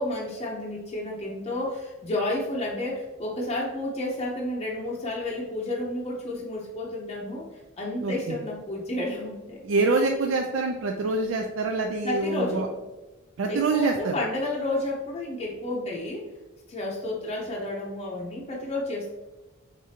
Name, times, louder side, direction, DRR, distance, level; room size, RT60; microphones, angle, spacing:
voice 1, 0.0-9.6 12.0-12.7 13.5-16.3 16.7-19.1, left 1 dB, 30° left, -3 dB, 0.6 m, -31 dB
voice 2, 8.0-8.4 9.6-12.7 13.4-14.2, right 3 dB, 70° right, 3 dB, 0.4 m, -25 dB
4.9 x 3.6 x 2.7 m, 1.1 s
head